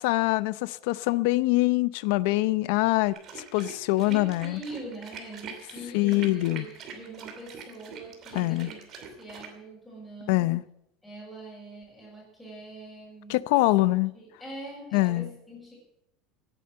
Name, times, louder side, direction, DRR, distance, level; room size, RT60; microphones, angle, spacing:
voice 1, 0.0-4.6 5.9-6.7 8.3-8.7 10.3-10.6 13.3-14.1 14.9-15.3, left 19 dB, 70° left, 18 dB, 0.6 m, -24 dB
sound 1, 3.1-9.5, right 6 dB, 40° right, 2.7 m, -44 dB
voice 2, 4.1-10.6 11.0-15.7, right 1 dB, 5° left, -6 dB, 6.2 m, -44 dB
17.0 x 9.2 x 7.8 m, 0.80 s
cardioid pair, 160°, 0 cm